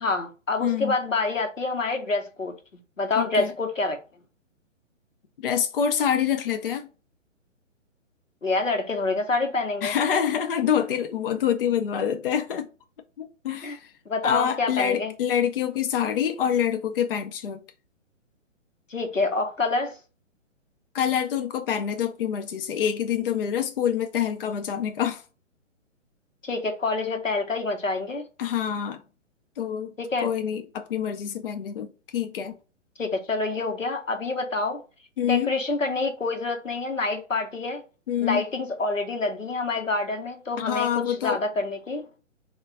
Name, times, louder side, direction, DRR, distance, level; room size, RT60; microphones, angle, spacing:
voice 1, 0.0-2.5 3.0-4.0 8.4-10.0 13.6-13.8 14.1-15.1 18.9-19.9 26.4-28.2 30.0-30.3 33.0-34.8 35.2-37.8 38.2-42.0, left 3 dB, 85° left, 1.0 m, -27 dB
voice 2, 0.6-0.9 3.1-3.5 5.4-6.9 9.8-12.7 13.2-13.9 14.2-17.6 20.9-25.2 28.4-29.0 29.6-32.6 35.2-35.5 38.1-38.4 40.6-41.4, left 9 dB, 50° left, 0.4 m, -26 dB
3.6 x 2.4 x 4.4 m
figure-of-eight pair, 130°, 38 cm